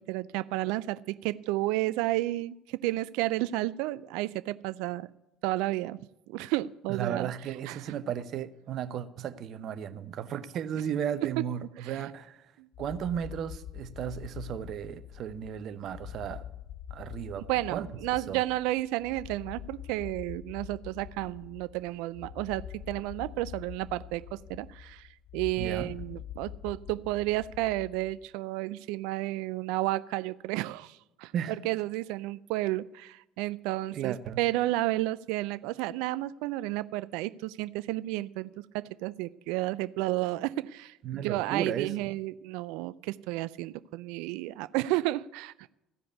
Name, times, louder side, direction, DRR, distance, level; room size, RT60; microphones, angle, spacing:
voice 1, 0.1-5.1 5.4-6.0 6.3-7.3 7.7-7.9 11.8-12.0 12.6-12.7 17.4-31.3 31.6-45.7, right 17 dB, 75° right, 0.3 m, -32 dB
voice 2, 6.9-12.5 12.8-16.4 16.9-17.9 18.3-18.4 25.6-25.9 31.3-31.6 33.9-34.4 41.0-41.9, right 9 dB, 55° right, 0.8 m, -35 dB
sound 1, 12.7-28.3, left 11 dB, 65° left, 0.5 m, -45 dB
15.0 x 5.0 x 9.5 m
hypercardioid pair, 65°, 0 cm